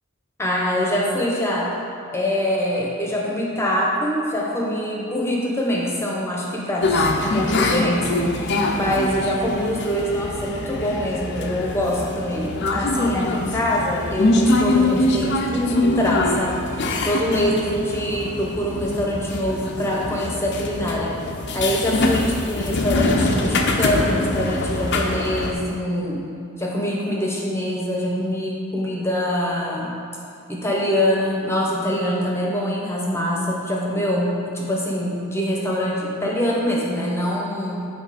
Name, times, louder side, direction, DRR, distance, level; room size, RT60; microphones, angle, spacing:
voice 1, 0.4-1.7 2.1-16.6 17.0-21.2 21.5-26.2 26.6-30.0 30.5-37.9, equal, 10° left, -3 dB, 1.0 m, -24 dB
sound 1, 6.8-25.5, left 2 dB, 55° left, 0.6 m, -24 dB
sound 2, 10.6-21.1, right 3 dB, 75° right, 0.6 m, -41 dB
8.1 x 4.4 x 5.0 m, 2.5 s
head